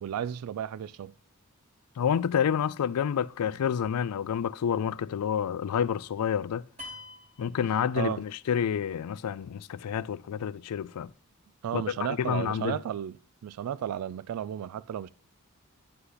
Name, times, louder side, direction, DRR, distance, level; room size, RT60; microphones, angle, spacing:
voice 1, 0.0-1.1 7.9-8.2 11.6-13.2 13.4-15.1, right 9 dB, 85° right, 0.3 m, -33 dB
voice 2, 2.0-6.7 7.4-11.1 11.7-11.8 12.2-12.8, left 8 dB, 90° left, 0.4 m, -29 dB
sound 1, 6.8-8.5, left 2 dB, 30° right, 2.3 m, -46 dB
9.7 x 5.6 x 3.9 m
head